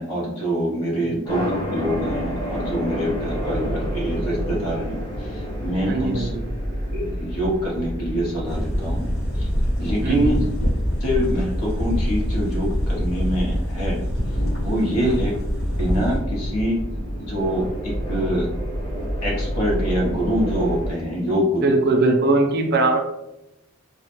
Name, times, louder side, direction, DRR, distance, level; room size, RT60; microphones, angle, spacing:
voice 1, 0.0-6.3 6.9-9.1 9.3-9.5 9.8-10.4 11.0-14.0 14.3-15.4 15.8-16.8 17.2-18.5 19.2-21.8, equal, 85° left, -3 dB, 0.8 m, -25 dB
sound 1, 1.2-20.9, equal, 20° left, 0.7 m, -29 dB
voice 2, 5.9-6.4 10.0-10.4 15.0-15.2 21.6-23.0, right 2 dB, 45° right, 3 dB, 0.3 m, -21 dB
sound 2, 8.5-16.2, equal, 50° left, 1.0 m, -25 dB
2.1 x 2.0 x 2.9 m, 0.92 s
head